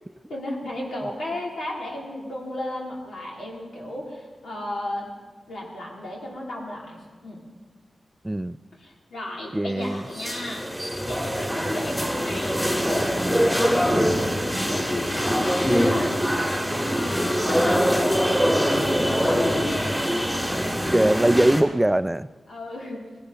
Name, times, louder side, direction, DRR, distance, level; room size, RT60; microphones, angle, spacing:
voice 1, 0.3-5.1 5.5-7.4 8.8-10.7 11.1-20.1 22.5-23.0, left 1 dB, 85° left, -3 dB, 3.1 m, -34 dB
voice 2, 8.2-8.6 9.5-10.0 20.9-22.3, right 1 dB, 15° right, 15 dB, 0.3 m, -21 dB
sound 1, 10.1-21.6, equal, 5° left, 2.0 m, -23 dB
17.5 x 11.0 x 4.0 m, 1.4 s
cardioid pair, 65°, 0 cm